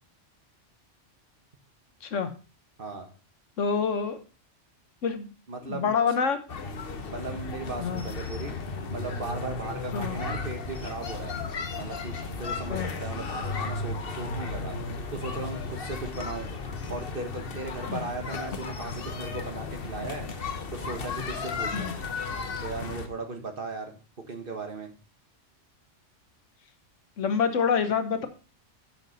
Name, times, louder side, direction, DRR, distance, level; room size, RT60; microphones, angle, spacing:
voice 1, 2.0-2.3 3.6-4.2 5.0-5.3 5.7-6.4 7.7-8.0 9.9-10.2 12.7-12.9 17.9-18.0 21.7-21.9 27.2-28.3, left 6 dB, 85° left, 9 dB, 1.4 m, -26 dB
voice 2, 5.5-5.9 7.1-8.5 8.9-11.4 11.7-14.8 15.1-16.5 16.9-20.3 20.7-22.0 22.6-23.9 24.3-24.9, right 3 dB, 50° right, 4 dB, 1.7 m, -37 dB
sound 1, 6.5-23.1, left 4 dB, 50° left, 1.1 m, -34 dB
9.2 x 6.7 x 4.0 m, 0.37 s
omnidirectional pair, 1.2 m